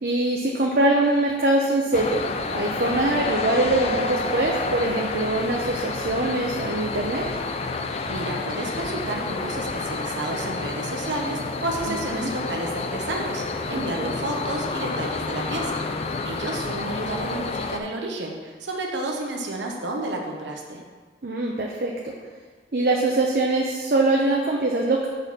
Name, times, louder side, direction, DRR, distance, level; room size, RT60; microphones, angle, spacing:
voice 1, 0.0-7.3 11.9-12.3 13.7-14.1 21.2-22.1 22.7-25.1, right 2 dB, 50° right, -1 dB, 0.7 m, -23 dB
sound 1, 1.9-17.8, left 3 dB, 35° left, 0.4 m, -29 dB
voice 2, 7.8-15.8 16.2-20.8, right 2 dB, 80° right, 0 dB, 1.0 m, -31 dB
6.5 x 4.2 x 6.1 m, 1.5 s
head